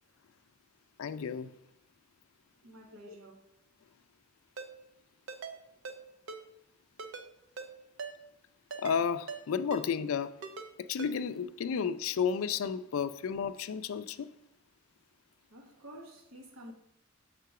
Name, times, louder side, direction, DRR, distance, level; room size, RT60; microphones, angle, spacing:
voice 1, 1.0-1.5 8.8-10.4 10.8-14.3, left 6 dB, 80° left, 0.3 m, -32 dB
voice 2, 2.6-3.3 5.7-5.8 15.5-16.7, right 1 dB, 85° right, 1.0 m, -50 dB
Ringtone, 4.6-4.7 5.3-5.6 5.8-6.0 6.3-6.4 7.0-7.3 7.6-7.7 8.0-8.1 8.7-9.0 9.3-9.4 9.7-9.8 10.4-10.7 11.0-11.1, right 4 dB, 60° right, 0.5 m, -41 dB
6.7 x 3.7 x 4.8 m
head